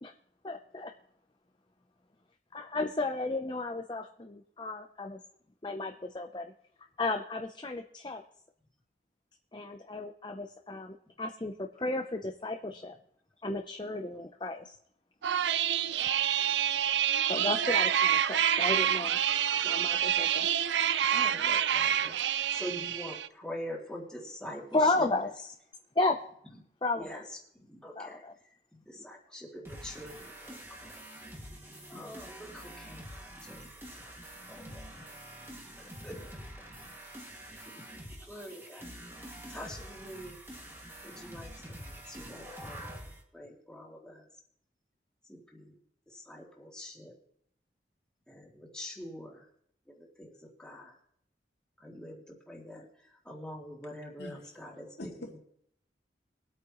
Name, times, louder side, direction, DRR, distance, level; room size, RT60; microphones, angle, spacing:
voice 1, 0.4-0.9 2.5-5.2 5.6-6.5 7.0-8.2 9.5-12.9 13.4-14.7 17.3-19.2 19.6-20.5 24.7-25.5 26.0-26.2 26.8-27.2 28.0-28.3, left 2 dB, 25° left, 3 dB, 0.6 m, -33 dB
sound 1, 15.2-23.3, right 9 dB, 85° right, 0.5 m, -27 dB
voice 2, 21.1-22.1 22.5-25.0 27.0-27.2 27.7-28.2 28.9-31.0 31.9-33.6 34.0-34.1 34.5-35.0 36.0-36.4 38.3-38.9 39.5-40.4 41.0-43.0 43.3-44.2 45.3-45.7 46.1-47.1 48.3-49.4 50.0-50.3 50.6-50.9 51.8-52.2 52.5-52.8 53.3-55.1, equal, 5° left, -3 dB, 2.6 m, -44 dB
sound 2, 29.6-43.2, right 1 dB, 15° right, 2.1 m, -46 dB
voice 3, 54.2-54.6 55.0-55.4, left 1 dB, 70° left, 0 dB, 2.3 m, -44 dB
22.5 x 8.5 x 3.1 m, 0.69 s
head